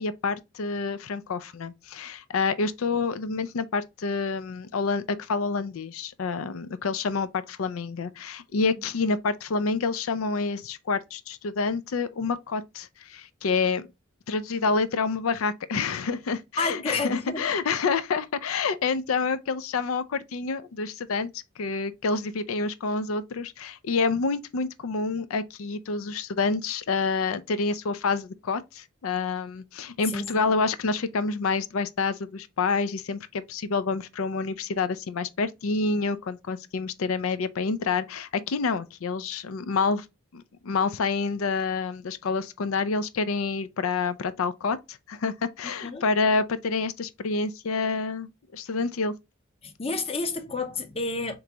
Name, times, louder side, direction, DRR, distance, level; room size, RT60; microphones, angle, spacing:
voice 1, 0.0-13.9 14.3-40.1 40.3-49.1, left 4 dB, 85° left, 0.5 m, -28 dB
voice 2, 16.6-17.5 30.1-30.4 45.8-46.0 49.6-51.3, left 3 dB, 30° left, 0.6 m, -30 dB
3.9 x 3.1 x 3.4 m
head